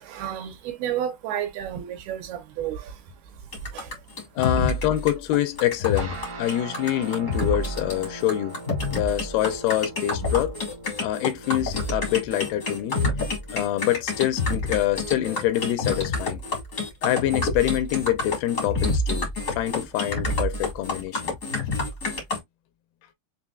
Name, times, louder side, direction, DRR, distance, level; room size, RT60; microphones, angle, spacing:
voice 1, 0.0-4.3, right 10 dB, 75° right, 2.8 m, -32 dB
sound 1, 3.5-22.4, left 2 dB, 55° left, 0.8 m, -28 dB
voice 2, 4.4-6.1 6.4-8.6 8.9-10.5 11.0-13.0 13.5-16.4 17.0-19.3 19.6-21.4, left 13 dB, 80° left, 2.5 m, -25 dB
sound 2, 5.9-16.4, right 2 dB, 55° right, 1.3 m, -42 dB
6.7 x 2.6 x 2.3 m
omnidirectional pair, 4.6 m